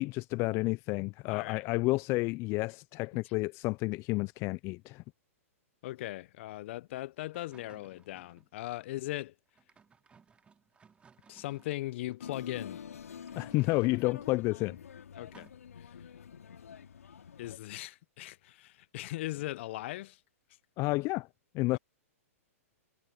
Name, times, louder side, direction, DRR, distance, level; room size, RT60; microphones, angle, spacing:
voice 1, 0.0-5.0 13.4-14.8 20.8-21.3 21.5-21.8, left 22 dB, 35° left, 0.6 m, -30 dB
voice 2, 1.3-1.6 5.8-9.3 11.3-12.8 15.2-15.5 15.8-16.0 17.4-20.2, left 16 dB, 55° left, 1.0 m, -39 dB
sound 1, 7.3-8.5 9.5-12.2 13.1-14.2 15.3-15.5, right 6 dB, 15° right, 2.7 m, -61 dB
sound 2, 12.2-17.6, left 8 dB, 75° left, 4.6 m, -47 dB
hypercardioid pair, 120°, 8 cm